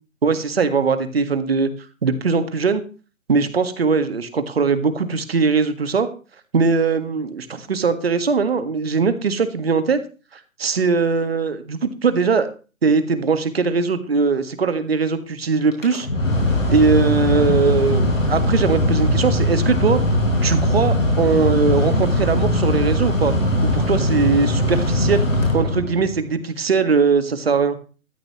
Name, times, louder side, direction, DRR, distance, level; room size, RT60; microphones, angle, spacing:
voice 1, 0.2-1.7 2.0-2.8 3.3-6.1 6.5-10.0 10.6-12.5 12.8-16.1 16.7-20.0 20.4-23.3 23.6-25.2 25.5-27.8, right 5 dB, 45° right, 10 dB, 1.8 m, -20 dB
Mechanical fan, 15.7-26.2, left 1 dB, 70° left, 4.8 m, -20 dB
15.0 x 13.5 x 3.2 m, 0.34 s
figure-of-eight pair, 145°, 41 cm